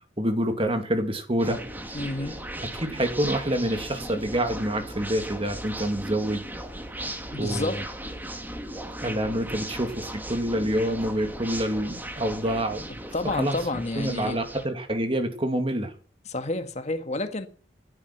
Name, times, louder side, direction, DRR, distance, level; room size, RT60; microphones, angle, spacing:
voice 1, 0.2-1.6 2.8-6.4 7.4-7.7 9.0-12.9 13.4-13.6 14.0-15.9, right 1 dB, 30° right, 2.4 m, -27 dB
sound 1, 1.4-14.6, right 1 dB, 10° right, 2.2 m, -37 dB
voice 2, 1.9-2.4 7.3-7.9 13.1-14.4 16.3-17.5, left 2 dB, 40° left, 1.8 m, -30 dB
17.0 x 11.5 x 6.1 m
head